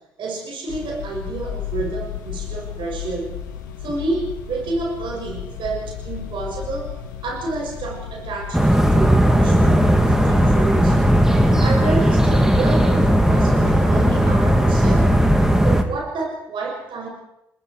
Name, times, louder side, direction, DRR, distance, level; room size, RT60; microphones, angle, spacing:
voice 1, 0.2-3.4 3.8-6.9 7.2-11.0 11.3-15.2 15.6-17.1, right 3 dB, 50° right, 0 dB, 6.9 m, -29 dB
sound 1, 0.7-14.3, left 9 dB, 75° left, 2.4 m, -33 dB
sound 2, 8.5-15.8, equal, 5° right, 3.5 m, -16 dB
30.0 x 20.5 x 4.8 m, 0.83 s
figure-of-eight pair, 45°, 10 cm